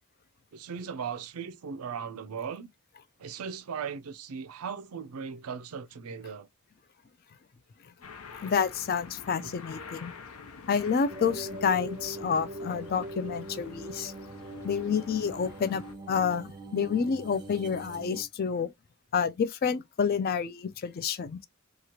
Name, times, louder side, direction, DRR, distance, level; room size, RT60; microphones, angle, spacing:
voice 1, 0.5-2.7 3.2-6.5 9.4-9.6, right 6 dB, 80° right, 0.5 m, -38 dB
sound 1, 8.0-15.9, left 5 dB, 85° left, 0.6 m, -48 dB
voice 2, 8.3-10.1 10.7-14.1 14.6-15.8 16.1-18.7 19.1-21.4, left 6 dB, 45° left, 0.3 m, -29 dB
sound 2, 11.1-18.2, right 1 dB, 20° right, 0.5 m, -42 dB
2.9 x 2.4 x 2.9 m
head